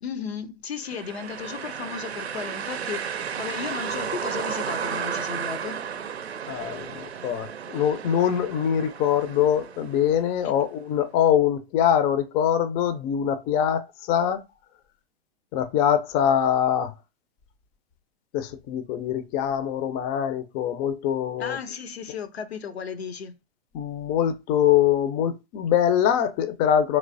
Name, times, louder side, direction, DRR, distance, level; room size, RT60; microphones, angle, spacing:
voice 1, 0.0-5.8 10.4-10.5 21.4-23.4, left 6 dB, 85° left, 0.7 m, -35 dB
sound 1, 0.8-10.6, right 7 dB, 90° right, 0.5 m, -33 dB
voice 2, 6.5-14.4 15.5-16.9 18.3-21.6 23.7-27.0, left 9 dB, 30° left, 0.4 m, -23 dB
3.2 x 3.2 x 2.6 m
hypercardioid pair, 110°, 31 cm